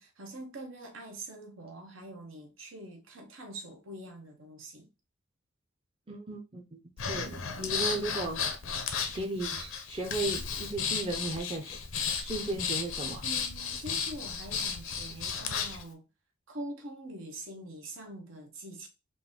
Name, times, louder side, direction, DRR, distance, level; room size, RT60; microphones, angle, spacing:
voice 1, 0.0-4.9 7.2-7.4 13.2-16.0 16.5-18.9, right 1 dB, 75° right, 1.1 m, -44 dB
voice 2, 6.1-6.6 7.1-8.4 9.1-11.8 12.1-13.2, right 2 dB, 25° right, 0.6 m, -35 dB
Breathing, 7.0-15.8, left 6 dB, 90° left, 0.7 m, -34 dB
3.8 x 2.6 x 3.7 m
head